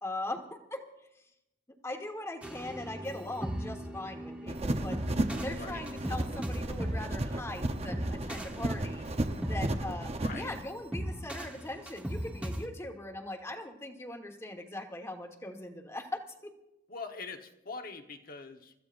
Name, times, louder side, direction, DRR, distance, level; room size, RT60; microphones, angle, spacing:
voice 1, 0.0-0.8 1.8-5.0 5.4-9.0 9.4-16.5, left 1 dB, 15° left, 4 dB, 1.4 m, -40 dB
sound 1, 2.4-12.7, equal, 5° right, 1.1 m, -38 dB
sound 2, 4.5-10.6, right 1 dB, 35° right, 0.8 m, -34 dB
voice 2, 10.1-10.5 16.9-18.7, left 4 dB, 50° left, 5 dB, 1.2 m, -43 dB
29.5 x 14.5 x 2.6 m, 0.88 s
head